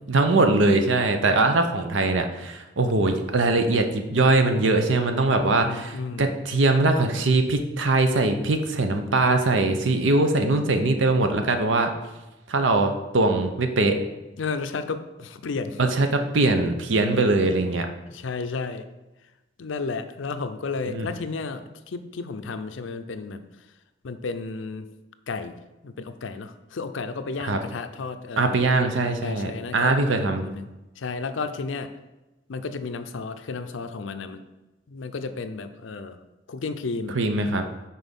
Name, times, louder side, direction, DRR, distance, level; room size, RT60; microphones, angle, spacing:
voice 1, 0.1-5.9 6.2-11.9 12.5-14.0 15.8-17.9 20.9-21.1 27.4-27.6 28.4-30.5 37.1-37.7, right 2 dB, 80° right, 6 dB, 0.7 m, -21 dB
voice 2, 5.6-6.3 14.4-15.8 18.1-18.9 19.6-23.5 24.0-24.9 25.3-25.6 25.8-28.7 29.2-30.0 30.4-31.9 32.5-34.4 34.9-36.2 36.5-37.2, left 4 dB, 80° left, 10 dB, 0.5 m, -32 dB
6.2 x 4.1 x 5.3 m, 1.0 s
head